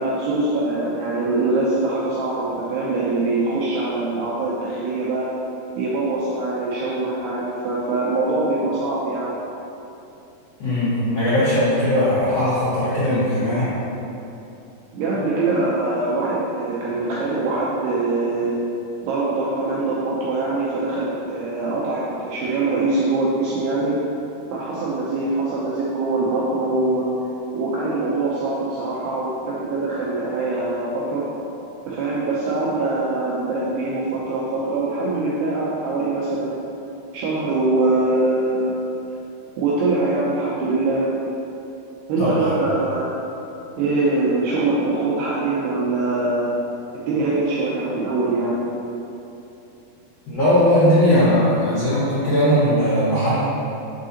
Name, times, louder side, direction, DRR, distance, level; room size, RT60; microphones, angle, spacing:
voice 1, 0.0-5.3 5.8-9.3 14.9-18.6 19.0-24.0 24.5-27.1 27.5-31.3 31.9-36.6 37.1-38.8 39.6-41.1 42.1-43.2 43.8-46.6 46.9-48.6, right 2 dB, 85° right, -6 dB, 2.4 m, -23 dB
voice 2, 10.6-13.7 42.2-42.5 50.3-53.4, equal, 75° left, -12 dB, 1.5 m, -19 dB
6.6 x 6.2 x 2.8 m, 2.9 s
omnidirectional pair, 5.4 m